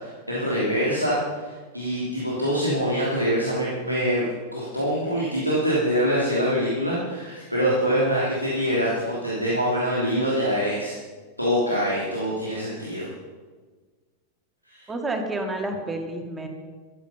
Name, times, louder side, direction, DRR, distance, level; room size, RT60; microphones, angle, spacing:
voice 1, 0.0-4.3 4.5-10.9 11.4-13.1 14.7-14.9, equal, 90° left, -6 dB, 3.3 m, -24 dB
voice 2, 14.9-16.5, right 2 dB, 15° right, 3 dB, 2.3 m, -29 dB
14.5 x 13.5 x 5.8 m, 1.4 s
figure-of-eight pair, 90°, 0 cm